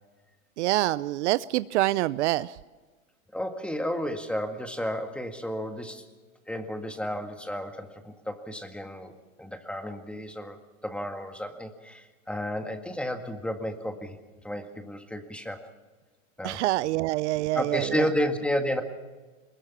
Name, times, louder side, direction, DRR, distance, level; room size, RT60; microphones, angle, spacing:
voice 1, 0.6-2.6 16.4-18.1, right 16 dB, 60° right, 17 dB, 0.6 m, -26 dB
voice 2, 3.3-6.1 6.5-9.1 9.4-14.2 14.4-15.7 16.4-16.6 17.5-18.8, equal, 5° left, 6 dB, 1.9 m, -32 dB
22.0 x 21.0 x 6.1 m, 1.3 s
hypercardioid pair, 120°, 40 cm